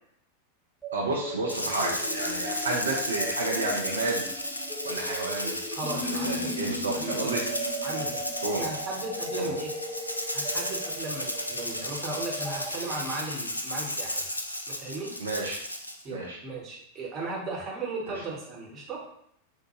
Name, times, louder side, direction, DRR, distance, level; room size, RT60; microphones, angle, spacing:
sound 1, 0.8-12.7, equal, 5° right, 0.6 m, -37 dB
voice 1, 0.9-4.2 4.8-5.6 5.9-7.5 8.4-8.6 9.4-9.5 15.2-15.6 16.1-16.4, right 2 dB, 70° right, -2 dB, 0.5 m, -31 dB
Rattle (instrument), 1.5-16.0, left 1 dB, 85° left, 0.3 m, -34 dB
voice 2, 5.7-6.5 6.9-7.3 7.8-8.2 8.6-9.7 10.3-14.2 14.7-15.1 16.0-19.0, right 2 dB, 30° right, -2 dB, 1.0 m, -36 dB
3.7 x 2.2 x 3.0 m, 0.69 s
figure-of-eight pair, 90°, 0 cm